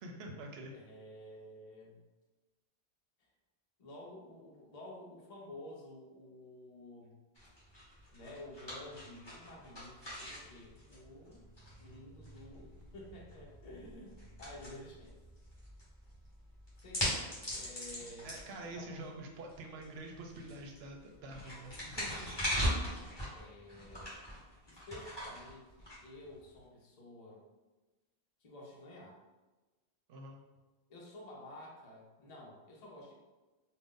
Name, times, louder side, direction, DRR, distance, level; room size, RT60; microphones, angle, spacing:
voice 1, 0.0-0.7 18.2-22.3 30.1-30.4, right 2 dB, 75° right, 2 dB, 0.8 m, -46 dB
voice 2, 0.7-2.0 3.8-7.2 8.1-11.4 11.8-15.2 16.8-18.3 18.6-19.0 21.2-21.4 22.1-22.4 23.3-24.2 24.7-27.4 28.4-29.2 30.9-33.1, left 1 dB, 45° left, -2 dB, 0.7 m, -51 dB
sound 1, 7.4-26.6, equal, 25° left, 1.1 m, -42 dB
2.5 x 2.2 x 3.5 m, 1.2 s
omnidirectional pair, 1.1 m